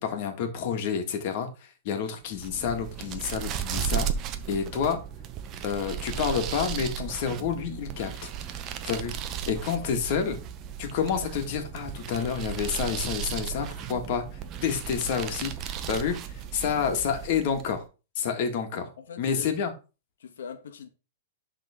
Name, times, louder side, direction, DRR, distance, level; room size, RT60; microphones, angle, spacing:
voice 1, 0.0-1.5 1.8-4.1 4.5-5.0 5.6-8.3 8.8-10.4 10.8-14.2 14.6-17.8 18.2-18.9 19.2-19.7, left 7 dB, 50° left, 1.7 m, -29 dB
sound 1, 2.3-17.8, right 9 dB, 30° right, 0.7 m, -35 dB
voice 2, 16.6-16.9 19.0-19.5 20.2-20.9, left 7 dB, 85° left, 1.4 m, -43 dB
11.0 x 3.8 x 3.6 m
hypercardioid pair, 150°, 0 cm